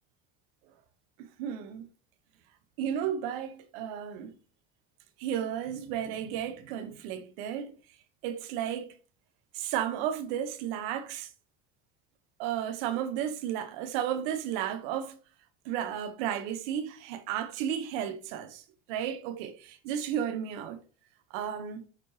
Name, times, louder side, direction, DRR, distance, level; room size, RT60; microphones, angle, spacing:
voice 1, 1.2-1.9 2.8-4.3 5.2-7.7 8.2-9.0 9.5-11.3 12.4-15.2 15.6-18.6 18.9-20.8 21.3-21.8, right 9 dB, 80° right, 1.2 m, -33 dB
12.0 x 4.3 x 3.2 m
supercardioid pair, 90°, 30 cm